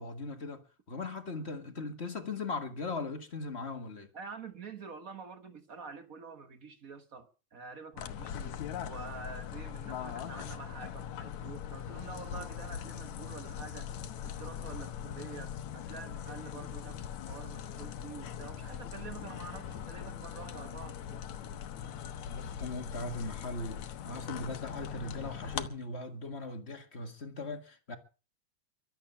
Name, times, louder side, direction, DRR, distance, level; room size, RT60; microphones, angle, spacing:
voice 1, 0.0-4.1 18.1-18.3 22.3-28.0, left 3 dB, 30° left, 1.3 m, -39 dB
voice 2, 4.1-13.9 14.2-21.2, right 5 dB, 55° right, 0.9 m, -47 dB
sound 1, 8.0-25.7, left 9 dB, 70° left, 2.4 m, -41 dB
23.5 x 8.0 x 5.7 m
omnidirectional pair, 3.5 m